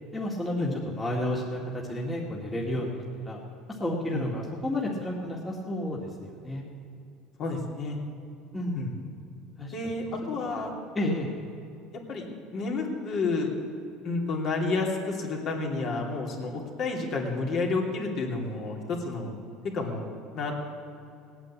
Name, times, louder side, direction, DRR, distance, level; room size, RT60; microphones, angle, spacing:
voice 1, 0.1-3.4 3.7-6.6 8.5-8.9 9.6-9.7 10.2-10.3 10.9-11.3, left 1 dB, 15° left, -3 dB, 2.0 m, -31 dB
voice 2, 7.4-8.0 8.8-8.9 9.7-10.7 12.1-12.3 12.5-13.5 14.0-19.3 19.7-20.1 20.3-20.5, left 3 dB, 45° left, 0 dB, 2.9 m, -30 dB
18.5 x 9.1 x 8.5 m, 2.5 s
cardioid pair, 135°, 0 cm